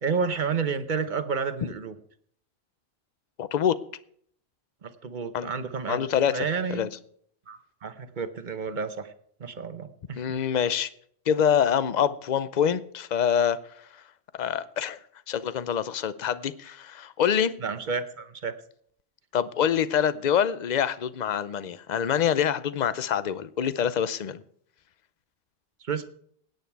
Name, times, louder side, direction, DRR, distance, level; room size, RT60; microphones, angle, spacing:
voice 1, 0.0-2.0 4.8-6.0 6.3-6.9 7.5-9.1 9.4-10.2 17.6-18.5 25.8-26.0, right 5 dB, 45° right, 1.0 m, -30 dB
voice 2, 3.4-3.8 5.3-5.5 5.9-6.9 10.2-10.9 11.3-13.6 14.4-15.0 15.3-17.5 19.3-24.4, left 8 dB, 50° left, 0.7 m, -25 dB
17.0 x 9.3 x 4.6 m
omnidirectional pair, 1.1 m